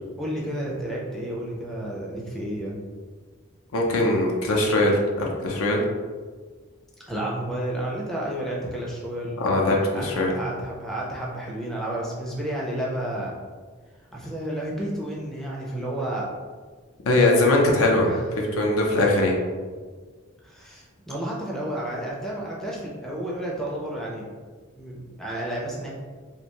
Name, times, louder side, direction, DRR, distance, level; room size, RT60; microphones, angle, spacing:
voice 1, 0.2-2.8 7.1-9.4 9.9-13.3 14.1-16.3 18.0-18.2 20.4-24.3 24.8-25.9, right 1 dB, ahead, -4 dB, 0.4 m, -31 dB
voice 2, 3.7-5.8 9.4-10.3 17.1-19.4, left 2 dB, 80° left, 0 dB, 0.5 m, -21 dB
2.6 x 2.2 x 2.9 m, 1.5 s
head